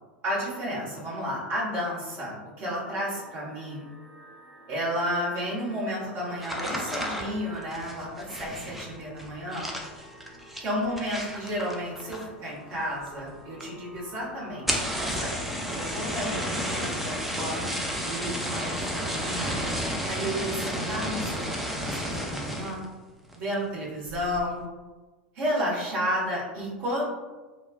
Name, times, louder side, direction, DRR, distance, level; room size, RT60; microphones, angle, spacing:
voice 1, 0.2-3.9 4.7-9.7 10.6-17.7 18.0-19.6 20.1-21.4 21.7-22.8 23.3-24.6 25.3-27.0, equal, 40° right, -6 dB, 1.3 m, -32 dB
sound 1, 2.8-21.0, right 2 dB, 80° right, 0.6 m, -51 dB
sound 2, 6.4-12.5 12.8-13.3 13.6-13.7 14.0-14.1 14.5-22.9 23.3-23.7 24.1-24.5, equal, 5° right, 0.4 m, -32 dB
2.9 x 2.3 x 2.4 m, 1.2 s
figure-of-eight pair, 85°, 6 cm